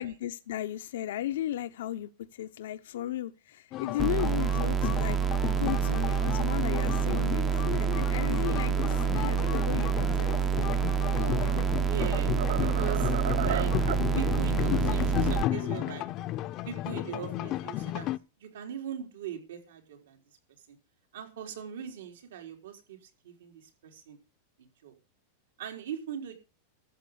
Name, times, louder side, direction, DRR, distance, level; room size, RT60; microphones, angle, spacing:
voice 1, 0.0-5.2 5.6-7.5 7.8-10.3 11.2-11.6, left 13 dB, 75° left, 0.8 m, -35 dB
sound 1, 3.7-18.2, left 14 dB, 35° left, 0.6 m, -33 dB
sound 2, 4.0-15.4, right 7 dB, 20° right, 0.6 m, -27 dB
sound 3, 11.2-11.6 12.0-14.1, right 10 dB, 70° right, 0.8 m, -35 dB
voice 2, 11.9-12.4 12.6-13.1 13.4-13.7 14.2-16.0 16.7-18.1 18.4-20.2 20.7-20.8 21.1-23.0 23.2-24.2 24.8-25.0 25.6-26.3, right 9 dB, 90° right, 4.2 m, -40 dB
13.5 x 7.6 x 8.0 m
supercardioid pair, 150°, 0 cm